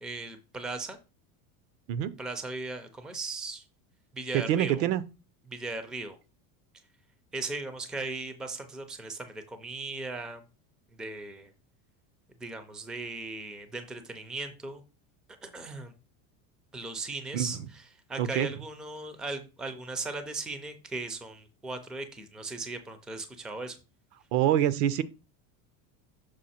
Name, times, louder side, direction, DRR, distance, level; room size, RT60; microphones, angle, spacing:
voice 1, 0.0-1.0 2.2-3.6 4.1-4.9 5.5-6.2 7.3-10.5 10.9-11.5 12.4-14.8 15.4-15.9 16.7-23.8, right 3 dB, ahead, 0.4 m, -38 dB
voice 2, 4.3-5.0 17.3-17.5 18.2-18.5 24.3-25.0, right 11 dB, 65° right, 0.7 m, -25 dB
6.5 x 4.2 x 4.2 m
supercardioid pair, 140°, 43 cm